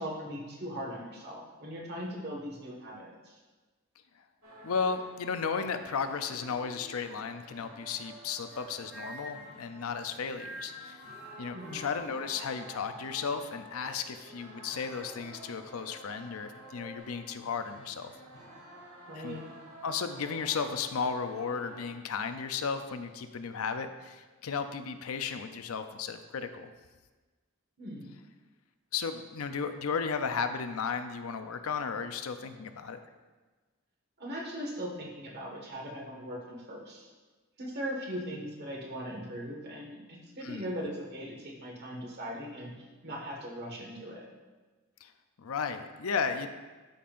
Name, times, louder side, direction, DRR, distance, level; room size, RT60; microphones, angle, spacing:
voice 1, 0.0-3.4 11.5-11.8 19.1-19.4 27.8-28.1 34.2-37.1 37.6-44.3, equal, 50° right, -1 dB, 1.6 m, -39 dB
sound 1, 4.4-21.9, right 1 dB, 70° right, 2.1 m, -51 dB
voice 2, 4.6-11.0 11.4-18.1 19.1-19.4 19.8-26.7 28.9-33.0 40.4-40.6 45.0-45.1 45.4-46.5, left 5 dB, 85° left, 8 dB, 0.6 m, -34 dB
sound 2, 8.5-9.6 10.0-13.2 13.6-14.2 14.9-15.3 15.8-16.0 16.6-17.0, left 1 dB, 5° right, 1.6 m, -48 dB
12.5 x 5.4 x 2.5 m, 1.3 s
head